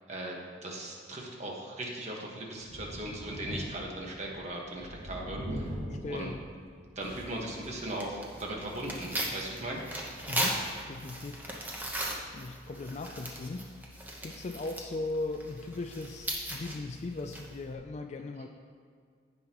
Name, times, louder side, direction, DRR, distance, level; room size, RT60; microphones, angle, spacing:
voice 1, 0.1-5.7 6.1-6.3 6.9-9.8, right 1 dB, 40° right, -2 dB, 1.4 m, -38 dB
Thunder, 2.6-7.7 8.1-8.2 9.6-9.7, equal, 85° right, 1.8 m, -41 dB
voice 2, 5.9-6.4 10.3-10.6 10.9-11.5 12.3-13.7 14.2-18.5, left 2 dB, 40° left, 6 dB, 0.4 m, -38 dB
Tearing, 7.0-17.7, right 1 dB, 10° right, 1.0 m, -38 dB
16.0 x 5.4 x 3.0 m, 2.1 s
head